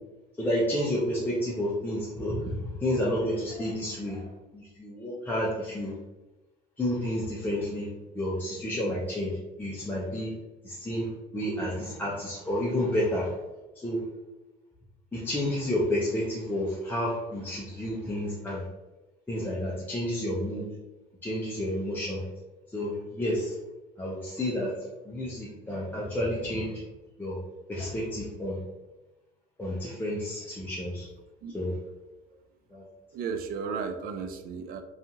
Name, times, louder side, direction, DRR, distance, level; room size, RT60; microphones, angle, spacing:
voice 1, 0.4-4.2 4.5-5.9 6.8-7.9 8.1-9.3 9.6-10.3 10.6-11.1 11.3-13.3 13.8-14.0 15.1-18.6 19.3-20.7 21.2-22.2 22.7-23.5 24.0-24.7 25.1-26.7 27.2-27.4 27.7-28.6 29.6-31.1 31.5-31.7 32.7-32.8, left 1 dB, 10° left, -6 dB, 0.5 m, -30 dB
voice 2, 33.1-34.8, right 5 dB, 60° right, 8 dB, 0.4 m, -34 dB
2.8 x 2.4 x 2.6 m, 1.1 s
cardioid pair, 110°, 17 cm